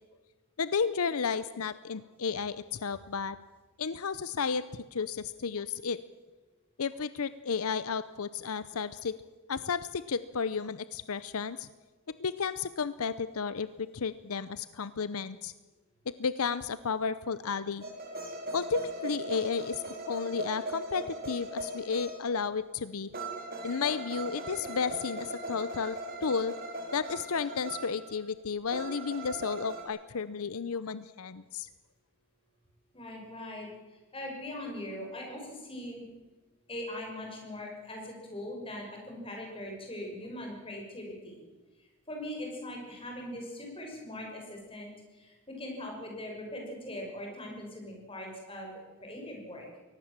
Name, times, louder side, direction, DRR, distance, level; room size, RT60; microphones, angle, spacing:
voice 1, 0.6-3.4 3.8-6.0 6.8-9.1 9.5-11.7 12.2-15.5 16.1-17.8 18.5-23.1 23.6-26.6 26.9-31.7, left 5 dB, 75° left, 15 dB, 0.7 m, -33 dB
sound 1, 17.8-22.5 23.1-28.0 28.7-29.8, right 1 dB, 45° right, 4.7 m, -39 dB
voice 2, 32.9-33.7 34.1-36.0 36.7-41.3 42.1-44.9 45.5-49.6, left 1 dB, 25° left, 1 dB, 6.0 m, -41 dB
23.0 x 18.5 x 7.5 m, 1.3 s
head